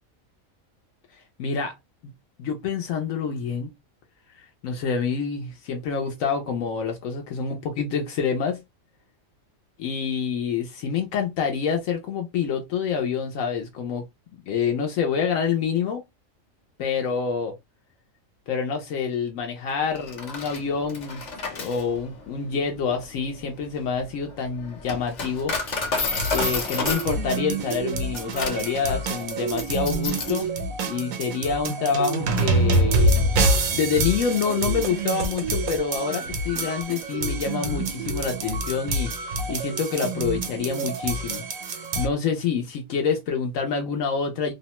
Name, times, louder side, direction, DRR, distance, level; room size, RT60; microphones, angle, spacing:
voice 1, 1.4-1.7 2.4-3.7 4.4-8.6 9.8-14.0 14.5-16.0 16.8-17.5 18.5-21.2 21.5-25.5 26.3-30.5 30.9-33.3 33.7-41.4 42.0-44.5, left 6 dB, 75° left, 1.0 m, -27 dB
Coin (dropping), 20.0-30.5, left 3 dB, 40° left, 0.7 m, -31 dB
sound 1, 26.1-42.1, right 2 dB, 90° right, 1.1 m, -26 dB
2.8 x 2.1 x 2.8 m
omnidirectional pair, 1.4 m